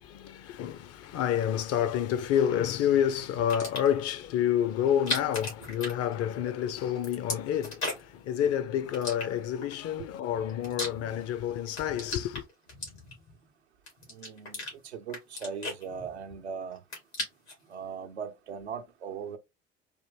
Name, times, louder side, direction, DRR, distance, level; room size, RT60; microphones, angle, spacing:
voice 1, 0.0-12.4, left 9 dB, 50° left, 0.7 m, -29 dB
sound 1, 3.5-4.0 4.9-6.5 6.8-8.2 8.9-9.7 10.3-11.4 11.7-13.4 13.9-14.7 15.1-16.4 16.7-17.6, left 2 dB, 85° left, 2.4 m, -37 dB
voice 2, 14.1-16.8 17.7-19.4, right 6 dB, 85° right, 0.6 m, -39 dB
4.4 x 2.6 x 3.6 m
figure-of-eight pair, 60°, 32 cm